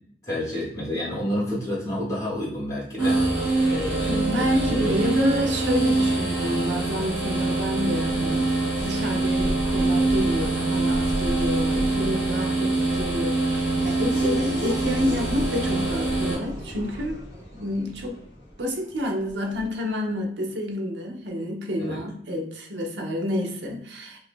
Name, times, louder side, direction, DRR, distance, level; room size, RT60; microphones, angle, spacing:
voice 1, 0.2-3.2 3.7-4.2 4.7-5.1 21.8-22.0, left 1 dB, 20° left, -6 dB, 1.3 m, -29 dB
sound 1, 3.0-16.3, right 2 dB, 5° right, 1.2 m, -24 dB
voice 2, 4.1-17.2 17.6-18.2 18.6-24.2, left 1 dB, 85° right, 2 dB, 0.7 m, -29 dB
Race car auto racing / Accelerating revving vroom, 4.6-19.9, equal, 20° right, 1.5 m, -36 dB
2.7 x 2.6 x 3.4 m, 0.64 s
head